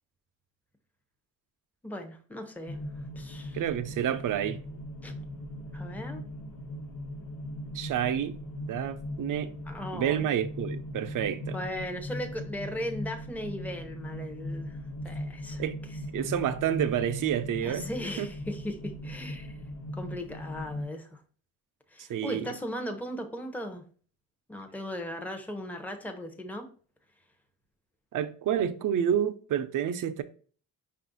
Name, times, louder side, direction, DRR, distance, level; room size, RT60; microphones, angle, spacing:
voice 1, 1.8-2.8 3.2-3.6 5.0-5.1 5.7-6.2 9.7-10.3 11.5-14.8 15.0-15.6 17.6-19.6 19.9-21.2 21.9-23.8 24.5-26.7, equal, 5° left, 0.7 m, -37 dB
sound 1, 2.7-20.8, left 1 dB, 85° left, 1.2 m, -39 dB
voice 2, 3.5-4.6 7.7-8.3 8.7-9.5 9.9-11.6 15.6-15.7 16.1-17.9 18.2-18.3 22.0-22.5 28.1-30.2, right 9 dB, 65° right, 0.6 m, -29 dB
5.3 x 2.5 x 3.9 m
cardioid pair, 80°, 34 cm